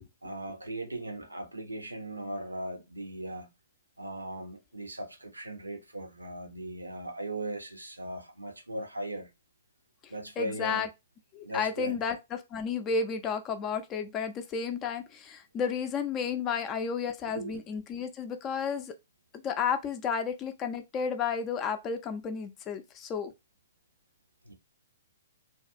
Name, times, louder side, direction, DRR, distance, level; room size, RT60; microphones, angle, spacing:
voice 1, 0.2-3.5 4.0-9.3 10.1-10.9 11.4-12.0 17.3-17.6 24.5-24.6, right 1 dB, 90° right, 0.7 m, -38 dB
voice 2, 10.4-10.9 11.3-18.9 19.3-23.3, left 6 dB, 25° left, 0.4 m, -32 dB
2.4 x 2.2 x 2.5 m
figure-of-eight pair, 115°, 0 cm